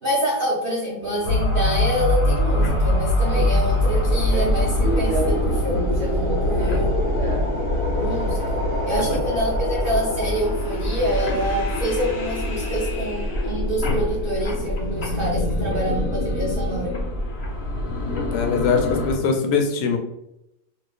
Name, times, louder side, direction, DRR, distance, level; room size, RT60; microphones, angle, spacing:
voice 1, 0.0-6.9 8.0-8.6 8.9-17.0, equal, 85° right, -5 dB, 0.4 m, -26 dB
Subway metro underground, 1.0-9.0, right 3 dB, 45° right, 1.0 m, -33 dB
sound 1, 1.2-19.2, left 1 dB, 50° left, 0.8 m, -23 dB
voice 2, 18.3-20.0, left 5 dB, 70° left, 4 dB, 1.2 m, -22 dB
4.1 x 2.7 x 2.5 m, 0.85 s
omnidirectional pair, 2.0 m